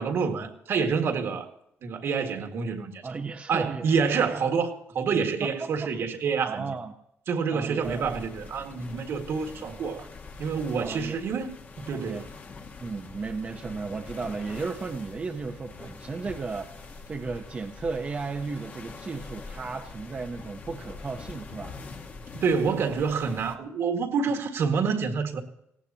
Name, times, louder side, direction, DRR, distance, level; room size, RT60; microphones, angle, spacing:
voice 1, 0.0-1.5 1.8-3.0 3.5-6.7 7.3-10.1 10.4-12.2 22.3-25.4, right 5 dB, 60° right, 1.8 m, -27 dB
voice 2, 3.0-3.9 4.3-4.4 5.4-5.9 6.4-6.9 7.5-8.0 10.8-11.2 11.9-12.3 12.8-21.8, right 4 dB, 30° right, 0.8 m, -35 dB
sound 1, 7.8-23.6, left 4 dB, 35° left, 1.3 m, -44 dB
18.0 x 17.0 x 2.9 m
cardioid pair, 145°, 5 cm